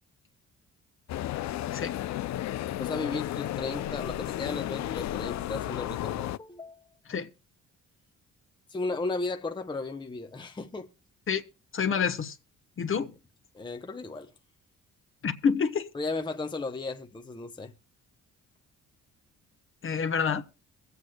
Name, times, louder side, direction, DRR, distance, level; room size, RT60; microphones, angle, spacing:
sound 1, 1.1-6.4, left 13 dB, 65° left, 0.5 m, -33 dB
voice 1, 2.8-6.8 8.7-10.9 13.5-14.3 15.9-17.7, left 3 dB, 15° left, 0.8 m, -35 dB
voice 2, 11.7-12.4 12.8-13.1 15.2-15.9 19.8-20.4, left 6 dB, 45° left, 1.1 m, -27 dB
23.5 x 8.1 x 2.2 m
cardioid pair, 90°, 30 cm